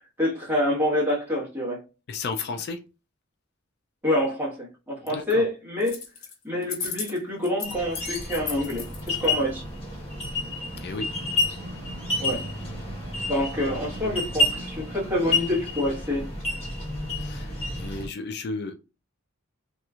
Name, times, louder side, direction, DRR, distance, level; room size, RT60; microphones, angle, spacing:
voice 1, 0.2-1.8 4.0-6.0 6.4-9.6 12.2-12.4 13.3-16.3, left 1 dB, 10° right, -5 dB, 1.3 m, -27 dB
voice 2, 2.1-2.8 5.1-5.4 10.8-11.1 17.2-18.7, left 4 dB, 50° left, 7 dB, 0.4 m, -33 dB
sound 1, 5.8-6.3 6.6-9.3, left 6 dB, 90° left, 1.2 m, -34 dB
sound 2, 7.6-18.1, left 2 dB, 30° left, 1.9 m, -30 dB
3.1 x 3.0 x 2.4 m, 0.31 s
head